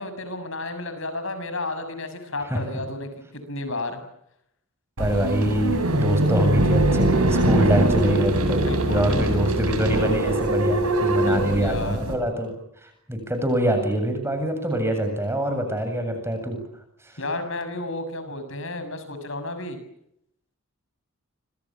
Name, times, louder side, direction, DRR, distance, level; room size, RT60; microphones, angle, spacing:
voice 1, 0.0-4.0 8.7-9.8 11.2-12.0 17.2-19.8, left 2 dB, 60° left, 10 dB, 6.7 m, -32 dB
voice 2, 5.0-8.6 8.9-12.5 12.8-16.6 17.0-17.1, right 1 dB, 10° right, 6 dB, 7.7 m, -24 dB
sound 1, 5.0-12.1, right 1 dB, 90° right, 7.4 m, -22 dB
27.5 x 27.0 x 7.5 m, 0.76 s
head